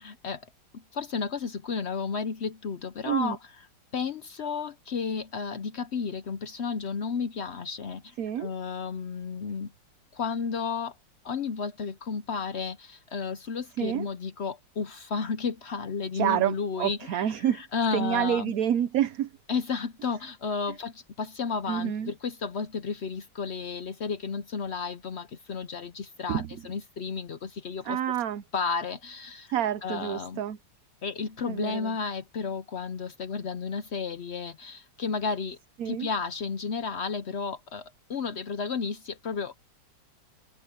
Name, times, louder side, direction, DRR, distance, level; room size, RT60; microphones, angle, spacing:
voice 1, 0.0-0.5 0.7-3.4 3.9-9.7 10.1-11.0 11.2-18.5 19.5-28.0 28.5-29.5 29.8-30.4 31.0-35.6 35.8-39.6, left 5 dB, 60° left, 0.7 m, -32 dB
voice 2, 3.0-3.4 8.2-8.5 13.8-14.1 16.1-17.6 17.9-19.3 21.7-22.1 26.3-26.5 27.8-28.4 29.5-30.6 31.5-31.9 35.8-36.1, right 10 dB, 60° right, 1.0 m, -28 dB
omnidirectional pair, 2.0 m